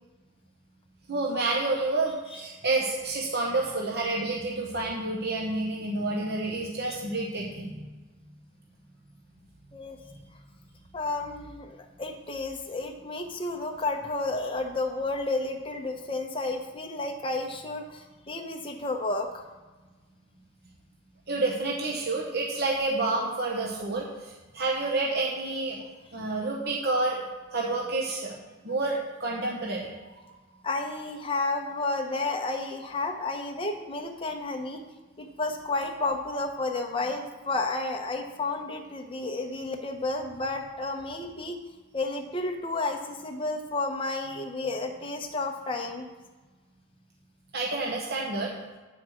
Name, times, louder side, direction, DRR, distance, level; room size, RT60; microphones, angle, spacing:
voice 1, 1.1-7.9 21.3-25.8 26.1-27.2 27.5-28.4 28.6-29.9 47.5-48.5, right 2 dB, 50° right, -2 dB, 1.0 m, -29 dB
voice 2, 10.9-19.5 30.6-34.8 35.2-41.6 41.9-46.1, left 2 dB, 25° left, 2 dB, 0.8 m, -31 dB
9.1 x 4.8 x 6.3 m, 1.3 s
head